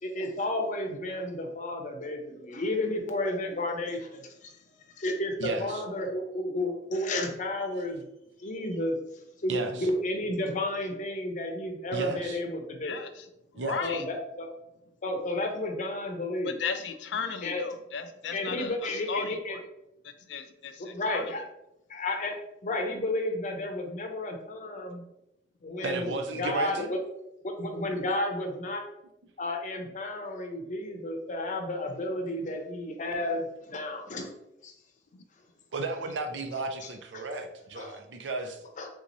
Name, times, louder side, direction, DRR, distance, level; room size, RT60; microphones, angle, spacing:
voice 1, 0.0-4.5 5.0-8.0 8.4-9.0 9.4-13.0 13.8-14.5 15.0-16.6 17.4-17.6 18.3-19.6 20.8-21.4 21.9-22.3 22.6-25.0 25.6-27.0 27.4-28.8 29.4-34.3 34.6-34.7 36.8-36.9 37.1-37.2 37.7-38.0 38.8-38.9, left 1 dB, 45° left, 3 dB, 0.6 m, -32 dB
voice 2, 5.4-5.8 9.5-9.9 11.9-12.4 13.5-13.8 25.8-27.0 35.7-38.6, right 2 dB, 90° right, 5 dB, 0.5 m, -34 dB
voice 3, 12.8-13.3 13.5-14.0 16.4-19.6 20.0-21.3, left 5 dB, 85° left, 8 dB, 0.4 m, -35 dB
3.6 x 3.0 x 2.6 m, 0.83 s
head